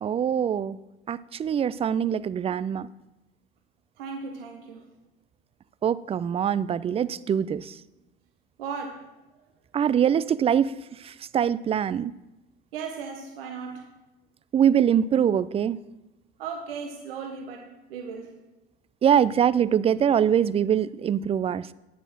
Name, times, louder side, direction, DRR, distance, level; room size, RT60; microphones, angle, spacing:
voice 1, 0.0-0.8 1.1-2.9 5.8-7.7 9.7-10.7 11.0-12.1 14.5-15.8 19.0-21.7, right 8 dB, 20° right, 18 dB, 0.4 m, -23 dB
voice 2, 4.0-4.9 8.6-9.1 12.7-13.9 16.4-18.3, right 5 dB, 70° right, 4 dB, 1.2 m, -36 dB
9.7 x 6.8 x 6.0 m, 1.0 s
figure-of-eight pair, 60°, 30 cm